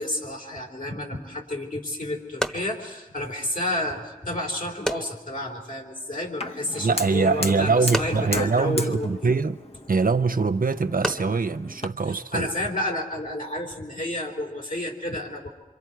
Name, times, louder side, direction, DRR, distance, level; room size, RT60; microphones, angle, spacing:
voice 1, 0.0-9.3 12.3-15.5, left 1 dB, 70° left, 3.6 m, -30 dB
sound 1, 1.3-12.7, equal, 5° left, 1.1 m, -37 dB
Fire, 6.4-11.9, left 2 dB, 45° left, 0.9 m, -36 dB
voice 2, 6.8-9.6 9.9-12.5, right 4 dB, 80° right, 0.6 m, -23 dB
27.0 x 24.5 x 4.6 m
wide cardioid pair, 40°, 14 cm